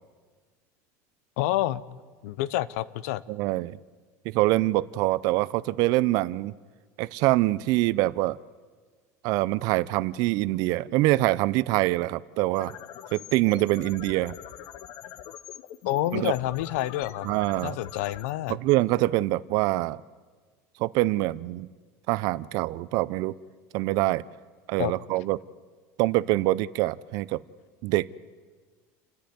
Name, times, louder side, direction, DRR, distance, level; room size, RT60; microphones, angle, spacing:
voice 1, 1.4-1.8 2.2-3.2 15.8-17.3 17.6-18.6 24.8-24.9, left 15 dB, 90° left, 18 dB, 0.8 m, -28 dB
voice 2, 3.3-3.8 4.2-6.5 7.0-8.4 9.2-12.7 13.1-14.3 16.1-16.3 17.2-17.8 18.5-20.0 20.8-21.7 22.1-23.3 23.7-24.2 24.7-25.4 26.0-27.4 27.8-28.1, right 18 dB, 55° right, 19 dB, 0.5 m, -25 dB
sound 1, 12.4-19.5, left 11 dB, 50° left, 1.0 m, -44 dB
29.5 x 10.5 x 9.4 m, 1.5 s
cardioid pair, 165°, 8 cm